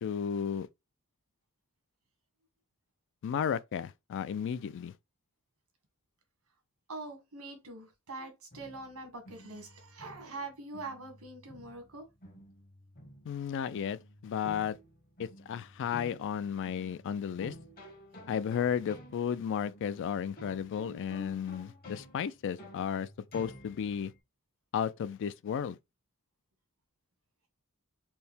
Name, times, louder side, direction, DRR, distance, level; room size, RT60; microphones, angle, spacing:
voice 1, 0.0-0.7 3.2-4.9 13.3-14.8 15.2-17.5 18.3-23.1 23.3-24.1 24.7-25.8, left 8 dB, 60° left, 0.3 m, -33 dB
voice 2, 6.9-12.1, right 2 dB, 90° right, 1.5 m, -44 dB
sound 1, 8.5-24.2, equal, 45° left, 1.2 m, -52 dB
4.4 x 2.1 x 3.5 m
head